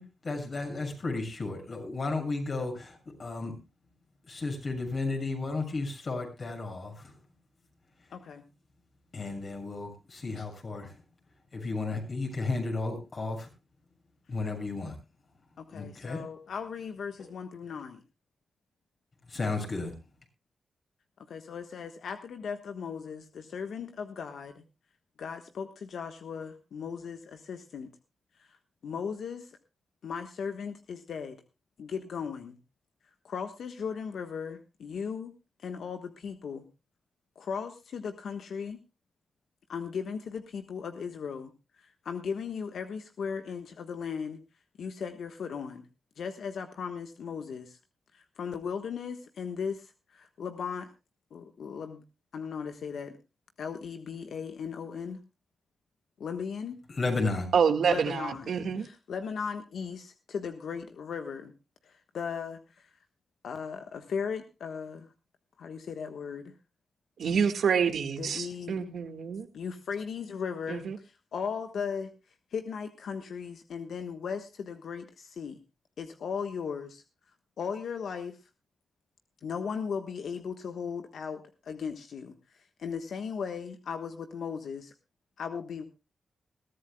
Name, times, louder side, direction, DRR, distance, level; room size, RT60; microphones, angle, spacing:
voice 1, 0.2-3.6 4.3-7.1 9.1-11.0 11.5-13.5 14.3-14.9 15.7-16.2 19.3-20.0 56.9-57.5, left 3 dB, 50° left, 6.8 m, -33 dB
voice 2, 8.1-8.4 10.4-10.5 15.6-18.0 21.2-24.6 25.2-27.9 28.4-28.6 28.8-29.6 30.0-31.4 31.8-32.6 33.2-35.3 35.6-36.6 37.3-38.8 39.7-41.5 41.8-44.4 44.8-45.9 46.2-47.8 48.1-50.9 51.3-52.0 52.3-53.1 53.6-55.2 56.2-56.8 57.9-61.5 61.8-62.9 63.4-65.1 65.6-66.5 68.2-68.9 69.5-72.1 72.5-75.6 76.0-77.0 77.6-78.4 79.4-82.4 82.8-84.9 85.4-85.8, left 6 dB, 80° left, 1.3 m, -37 dB
voice 3, 57.5-58.9 67.2-69.5 70.7-71.0, right 6 dB, 80° right, 1.7 m, -27 dB
21.5 x 14.5 x 2.2 m
cardioid pair, 80°, 0 cm